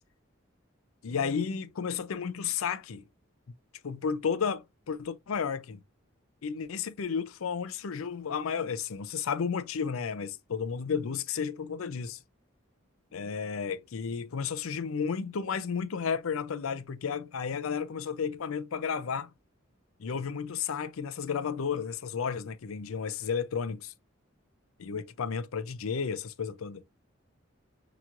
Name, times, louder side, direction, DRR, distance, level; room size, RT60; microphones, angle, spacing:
voice 1, 1.0-3.0 3.8-5.8 6.4-12.2 13.1-19.3 20.0-23.9 24.8-26.8, left 6 dB, 85° left, 0.5 m, -32 dB
5.8 x 2.9 x 2.5 m
head